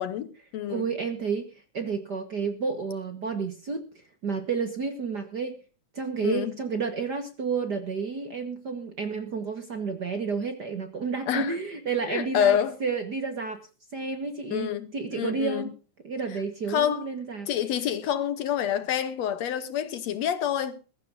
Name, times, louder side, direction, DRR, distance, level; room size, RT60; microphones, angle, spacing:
voice 1, 0.0-0.9 6.2-6.6 11.3-11.5 12.1-12.8 14.5-15.7 16.7-17.1 17.5-20.8, left 9 dB, 65° left, 2.0 m, -27 dB
voice 2, 0.7-5.6 5.9-13.6 13.9-15.7 16.0-17.5, right 5 dB, 45° right, 1.5 m, -31 dB
21.5 x 14.0 x 2.7 m
omnidirectional pair, 3.5 m